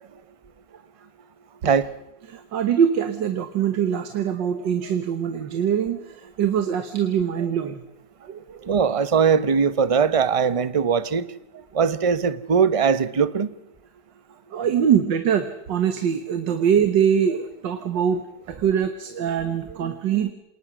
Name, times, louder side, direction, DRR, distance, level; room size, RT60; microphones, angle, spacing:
voice 1, 2.3-6.1 6.4-7.8 8.2-8.7 14.5-18.2 18.5-20.3, right 8 dB, 85° right, 1.9 m, -23 dB
voice 2, 8.7-11.2 11.7-13.5, right 6 dB, 40° right, 0.5 m, -20 dB
26.5 x 19.5 x 6.2 m
omnidirectional pair, 1.9 m